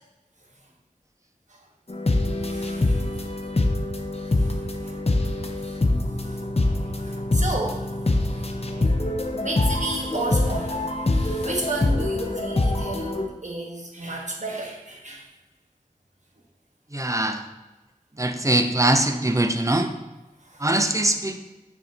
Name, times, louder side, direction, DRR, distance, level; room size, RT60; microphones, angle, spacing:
sound 1, 1.9-13.2, left 2 dB, 45° left, 0.7 m, -24 dB
voice 1, 2.5-3.1 4.1-5.0 6.2-6.4 7.0-7.9 8.3-8.9 9.3-15.2 20.4-20.7, right 2 dB, 55° right, -1 dB, 1.3 m, -33 dB
voice 2, 16.9-17.4 18.2-19.9 20.6-21.4, right 1 dB, 20° right, 7 dB, 0.6 m, -22 dB
6.8 x 6.5 x 2.9 m, 1.1 s
wide cardioid pair, 40°, 15 cm